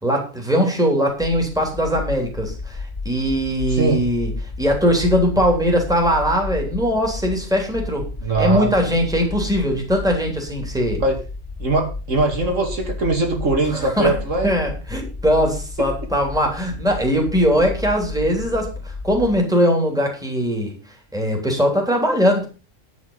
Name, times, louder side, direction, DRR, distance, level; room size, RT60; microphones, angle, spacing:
voice 1, 0.0-4.3 4.6-8.1 8.4-11.0 13.7-14.1 14.4-20.8 21.1-22.5, equal, 5° right, 1 dB, 3.3 m, -20 dB
sound 1, 1.2-19.4, left 3 dB, 40° left, 2.0 m, -32 dB
voice 2, 8.2-8.7 11.0-11.2 11.6-14.5, right 2 dB, 75° right, 2 dB, 2.8 m, -21 dB
10.5 x 8.4 x 5.5 m, 0.34 s
omnidirectional pair, 1.3 m